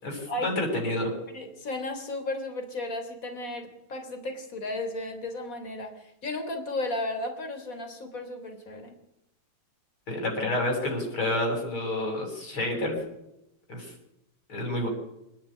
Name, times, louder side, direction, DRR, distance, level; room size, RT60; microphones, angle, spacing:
voice 1, 0.0-1.1 10.1-13.0 13.7-13.9 14.5-14.9, left 1 dB, 80° left, 1 dB, 8.3 m, -29 dB
voice 2, 1.3-9.0, left 2 dB, 40° left, 6 dB, 3.8 m, -34 dB
26.5 x 11.0 x 10.0 m, 0.86 s
omnidirectional pair, 2.2 m